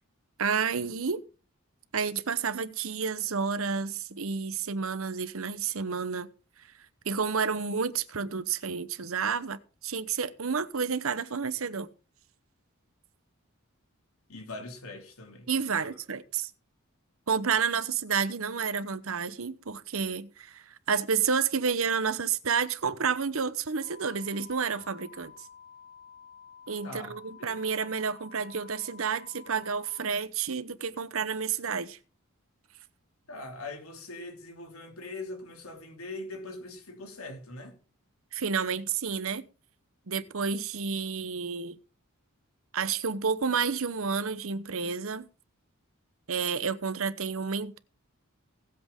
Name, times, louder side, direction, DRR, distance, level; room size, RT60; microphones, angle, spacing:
voice 1, 0.4-1.2 1.9-6.3 7.1-11.9 15.5-16.5 17.3-25.3 26.7-32.0 38.3-39.4 40.1-41.8 42.7-45.3 46.3-47.8, right 6 dB, 70° right, 0.9 m, -30 dB
voice 2, 14.3-16.0 26.8-27.2 33.3-37.8, left 2 dB, 85° left, 3.0 m, -42 dB
sound 1, 23.8-30.0, left 7 dB, 35° left, 0.8 m, -51 dB
19.0 x 8.0 x 3.7 m
head